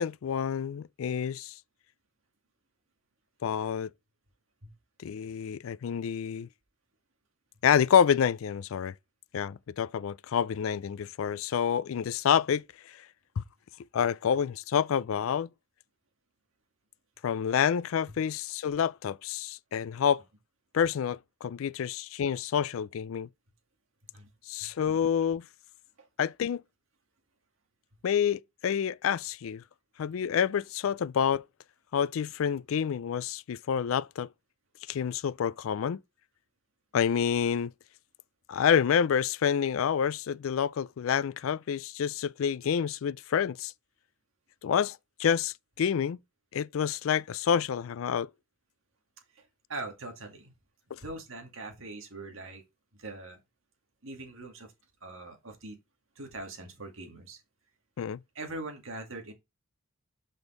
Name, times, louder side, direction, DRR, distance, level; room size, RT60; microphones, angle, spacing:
voice 1, 0.0-1.5 3.4-3.9 5.0-6.5 7.6-8.9 9.3-12.6 13.4-13.5 13.9-15.5 17.2-20.2 20.7-23.3 24.5-25.4 26.2-26.6 28.0-29.6 30.0-31.4 31.9-34.3 34.9-36.0 36.9-37.7 38.5-43.7 44.6-46.2 46.5-48.3 50.9-51.0 58.0-58.2, left 8 dB, 70° left, 0.4 m, -28 dB
voice 2, 49.3-50.5 51.0-52.6 52.9-53.4 54.0-54.7 55.0-55.8 56.2-57.4 58.3-59.3, right 2 dB, 65° right, 2.2 m, -42 dB
6.2 x 5.3 x 3.8 m
head